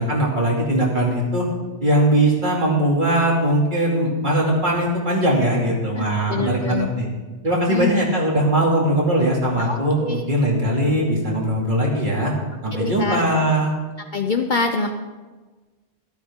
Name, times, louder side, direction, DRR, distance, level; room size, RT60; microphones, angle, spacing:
voice 1, 0.0-1.4 1.8-7.1 7.4-12.3 12.6-13.7, right 1 dB, 45° right, -3 dB, 2.8 m, -20 dB
voice 2, 6.3-6.9 7.7-8.0 9.6-10.2 12.7-13.2 14.1-14.9, left 4 dB, 50° left, 5 dB, 0.8 m, -25 dB
13.5 x 12.5 x 3.7 m, 1.3 s
omnidirectional pair, 1.2 m